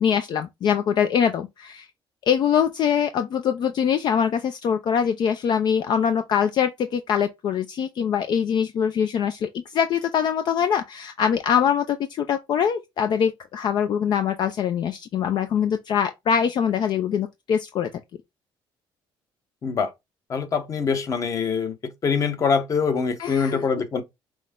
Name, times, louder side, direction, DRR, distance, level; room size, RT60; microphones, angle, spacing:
voice 1, 0.0-1.9 2.3-17.9 23.2-23.6, left 8 dB, 50° left, 0.4 m, -23 dB
voice 2, 20.3-21.7 22.0-24.0, left 5 dB, 35° left, 0.9 m, -24 dB
6.1 x 2.2 x 3.5 m
cardioid pair, 135°, 9 cm